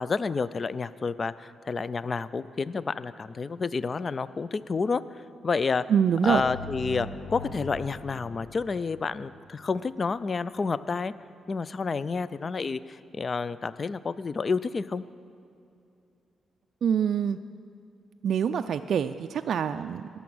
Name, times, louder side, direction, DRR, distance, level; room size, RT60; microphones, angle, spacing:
voice 1, 0.0-5.0 5.4-5.8 6.2-11.1 11.5-15.0, left 4 dB, 35° left, 16 dB, 0.3 m, -29 dB
voice 2, 5.9-6.4 16.8-17.4 18.2-20.1, right 7 dB, 65° right, 8 dB, 0.3 m, -25 dB
sound 1, 6.2-9.8, left 3 dB, 70° left, 1.2 m, -42 dB
21.0 x 7.0 x 6.1 m, 2.6 s
cardioid pair, 115°, 0 cm